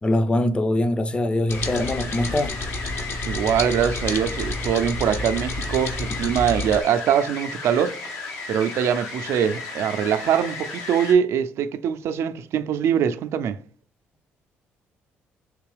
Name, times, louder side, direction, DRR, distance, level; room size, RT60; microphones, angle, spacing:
voice 1, 0.0-2.6, left 1 dB, 25° left, 0.5 m, -23 dB
sound 1, 1.5-11.1, left 3 dB, 80° left, 1.1 m, -35 dB
sound 2, 1.5-6.8, left 2 dB, 55° left, 0.8 m, -30 dB
voice 2, 3.3-8.0 8.5-13.6, right 8 dB, 70° right, 0.4 m, -23 dB
3.6 x 3.0 x 3.2 m
supercardioid pair, 70°, 5 cm